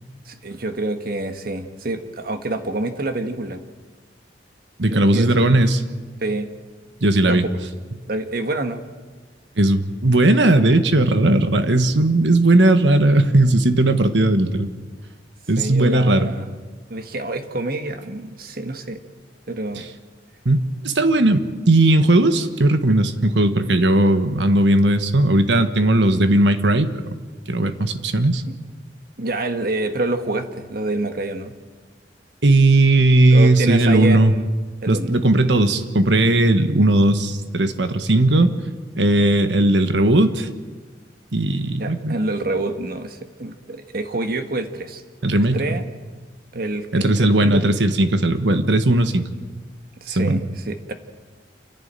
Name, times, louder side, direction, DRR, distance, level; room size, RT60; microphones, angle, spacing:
voice 1, 0.3-3.6 4.9-5.5 6.2-6.5 7.2-7.4 8.1-8.8 15.6-16.4 16.9-19.0 19.5-19.8 29.2-31.5 33.3-34.5 34.8-35.1 41.8-45.0 45.3-45.8 46.5-47.6 50.0-50.9, right 2 dB, 55° right, 8 dB, 1.5 m, -27 dB
voice 2, 4.8-5.8 7.0-7.4 9.6-14.7 15.5-16.3 20.4-27.2 27.5-28.4 32.4-34.3 34.9-38.5 39.0-40.5 41.3-42.1 45.2-45.8 46.9-49.3 50.2-50.4, right 1 dB, 90° right, 9 dB, 1.4 m, -17 dB
28.5 x 11.0 x 8.9 m, 1.5 s
head